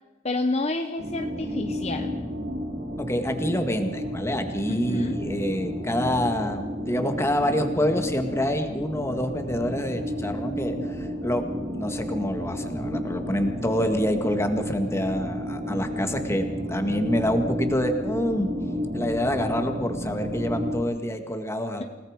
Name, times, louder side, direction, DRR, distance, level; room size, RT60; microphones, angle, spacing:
voice 1, 0.2-2.1 4.7-5.2, left 2 dB, 35° left, 6 dB, 0.9 m, -29 dB
sound 1, 1.0-20.8, equal, 50° right, 5.5 m, -32 dB
voice 2, 3.0-11.4 11.7-18.5 18.9-21.8, equal, 15° left, 5 dB, 1.9 m, -27 dB
28.5 x 18.5 x 5.1 m, 1.2 s
head